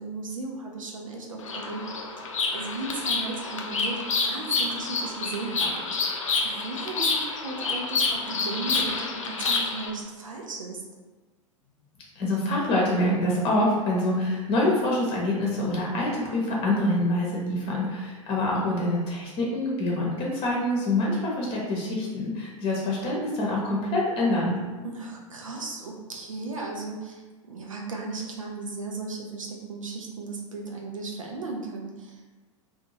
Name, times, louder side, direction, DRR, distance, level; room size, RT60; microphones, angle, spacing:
voice 1, 0.0-6.2 6.6-10.8 24.8-32.4, right 3 dB, 75° right, 0 dB, 0.6 m, -36 dB
Bird vocalization bird call bird song, 1.4-9.9, left 4 dB, 70° left, 0.4 m, -28 dB
voice 2, 12.2-24.5, left 1 dB, 35° left, -3 dB, 0.9 m, -26 dB
2.6 x 2.4 x 2.8 m, 1.3 s
figure-of-eight pair, 90°, 17 cm